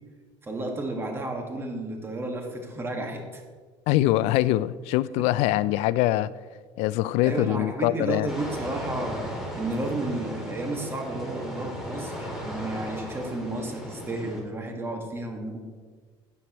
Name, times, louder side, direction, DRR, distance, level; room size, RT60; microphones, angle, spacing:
voice 1, 0.4-3.4 5.2-5.3 7.2-15.6, right 2 dB, 20° right, 1.7 m, -32 dB
voice 2, 3.9-6.3 6.8-8.3, left 15 dB, 75° left, 0.4 m, -23 dB
sound 1, 8.3-14.4, equal, 5° right, 2.5 m, -36 dB
13.0 x 9.4 x 3.0 m
cardioid pair, 125°, 11 cm